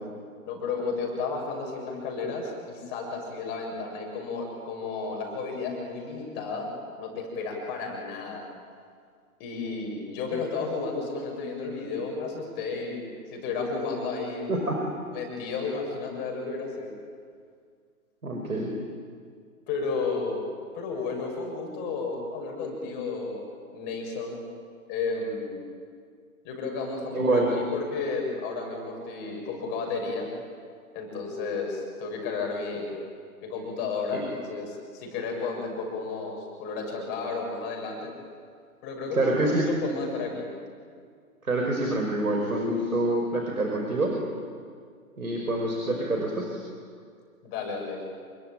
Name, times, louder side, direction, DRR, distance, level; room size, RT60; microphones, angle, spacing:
voice 1, 0.5-6.7 7.0-8.4 9.4-14.6 15.1-16.9 19.7-20.4 20.7-23.5 23.7-24.4 24.9-25.7 26.4-30.3 30.9-33.0 33.4-38.1 38.8-40.5 47.4-48.0, left 4 dB, 25° left, 1 dB, 7.0 m, -32 dB
voice 2, 18.2-18.7 27.1-27.5 34.1-34.2 39.1-39.7 41.5-44.1 45.2-46.6, right 2 dB, 75° right, 1 dB, 5.5 m, -26 dB
28.0 x 23.5 x 9.1 m, 2.1 s
figure-of-eight pair, 135°, 43 cm